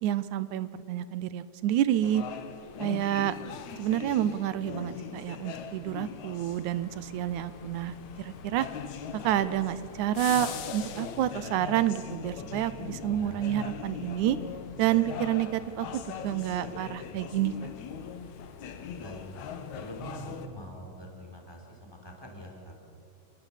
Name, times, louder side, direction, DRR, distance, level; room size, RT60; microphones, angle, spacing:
voice 1, 0.0-2.2 2.8-3.4 3.8-8.7 9.1-14.4 14.8-17.5, right 12 dB, 80° right, 14 dB, 2.1 m, -29 dB
sound 1, 2.0-20.5, left 7 dB, 70° left, 2.4 m, -40 dB
voice 2, 13.1-13.5 19.0-19.5 19.8-22.7, equal, 10° left, 0 dB, 3.7 m, -44 dB
27.0 x 20.0 x 7.3 m, 2.6 s
omnidirectional pair, 3.5 m